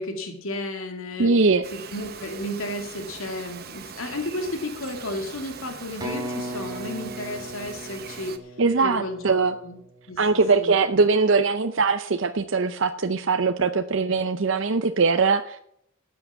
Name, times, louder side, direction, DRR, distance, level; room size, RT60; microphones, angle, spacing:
voice 1, 0.0-1.3 1.7-8.6 8.8-9.8 10.1-10.2 10.6-10.8, left 1 dB, 80° left, 4 dB, 2.3 m, -33 dB
voice 2, 1.2-1.6 8.6-9.5 10.2-15.6, right 4 dB, 65° right, 8 dB, 0.6 m, -21 dB
Bird vocalization bird call bird song, 1.6-8.4, right 6 dB, 45° right, 1.1 m, -41 dB
sound 1, 6.0-9.8, equal, 20° right, 1.8 m, -37 dB
13.0 x 8.5 x 7.2 m, 0.74 s
head